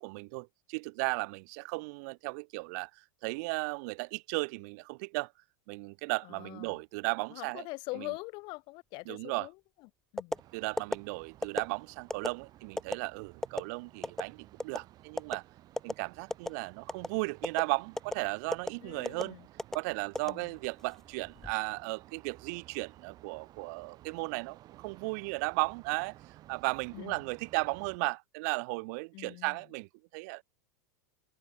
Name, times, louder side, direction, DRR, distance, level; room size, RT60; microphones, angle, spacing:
voice 1, 0.0-5.3 5.7-7.7 9.1-9.5 10.5-15.4 15.8-19.4 19.7-26.2 26.5-30.4, right 29 dB, 60° right, 2.3 m, -35 dB
voice 2, 6.2-6.8 7.3-10.4 18.8-19.5 20.3-20.6 26.9-27.2 29.1-29.6, left 25 dB, 50° left, 4.3 m, -44 dB
sound 1, 10.2-10.4 10.8-11.0 11.4-11.7 12.1-12.3 12.8-13.0 13.4-13.6 14.0-14.2 14.6-14.8 15.2-15.4 15.8-15.9 16.3-16.6 16.9-17.1 17.4-17.6 18.0-18.2 18.5-18.7 19.1-19.2 19.6-19.8 20.2-20.8 21.2-21.5, left 1 dB, 5° left, 0.9 m, -32 dB
sound 2, 10.3-28.0, right 14 dB, 40° right, 3.1 m, -56 dB
supercardioid pair, 120°, 10 cm